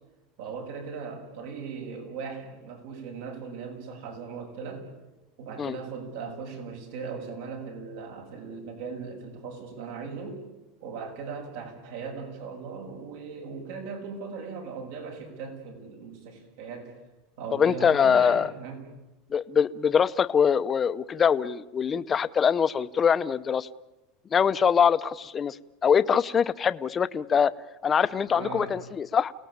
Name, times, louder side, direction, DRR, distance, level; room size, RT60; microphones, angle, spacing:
voice 1, 0.4-4.9 5.4-10.4 10.8-16.9 17.4-18.8 28.3-28.8, right 5 dB, 70° right, 4 dB, 7.0 m, -38 dB
voice 2, 17.5-18.5 19.3-23.7 24.3-25.6 25.8-27.5 27.8-29.3, left 7 dB, 20° left, 14 dB, 0.8 m, -23 dB
29.5 x 18.5 x 8.8 m, 1.1 s
supercardioid pair, 145°, 0 cm